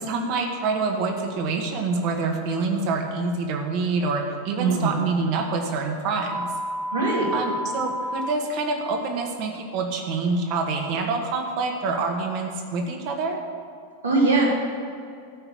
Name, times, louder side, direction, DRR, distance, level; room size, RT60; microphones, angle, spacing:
voice 1, 0.0-6.5 7.3-13.4, right 3 dB, 45° right, 3 dB, 1.8 m, -26 dB
voice 2, 4.6-5.0 6.9-7.3 14.0-14.5, right 3 dB, 75° right, -6 dB, 3.8 m, -21 dB
sound 1, 6.3-8.3, equal, ahead, 0.6 m, -30 dB
13.0 x 5.9 x 8.8 m, 2.3 s
figure-of-eight pair, 90°, 0 cm